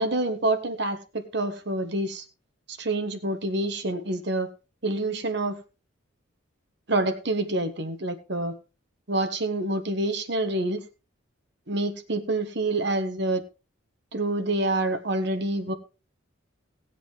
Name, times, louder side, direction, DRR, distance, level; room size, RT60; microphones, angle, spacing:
voice 1, 0.0-2.2 2.7-4.5 4.8-5.6 6.9-8.5 9.1-10.8 11.7-13.4 14.1-15.7, right 2 dB, 55° right, 9 dB, 1.3 m, -27 dB
18.0 x 8.2 x 3.4 m, 0.31 s
head